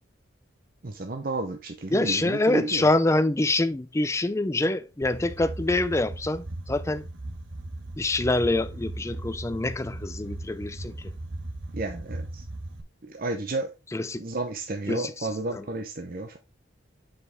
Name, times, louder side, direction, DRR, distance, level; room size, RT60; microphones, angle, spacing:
voice 1, 0.8-2.9 11.7-12.4 13.0-13.7 14.2-16.4, right 2 dB, 45° right, 0.7 m, -32 dB
voice 2, 1.9-7.0 8.0-11.1 13.9-14.2 14.9-15.6, left 2 dB, 15° left, 0.4 m, -26 dB
sound 1, 5.0-12.8, right 1 dB, 70° right, 1.1 m, -38 dB
6.8 x 5.0 x 3.5 m
head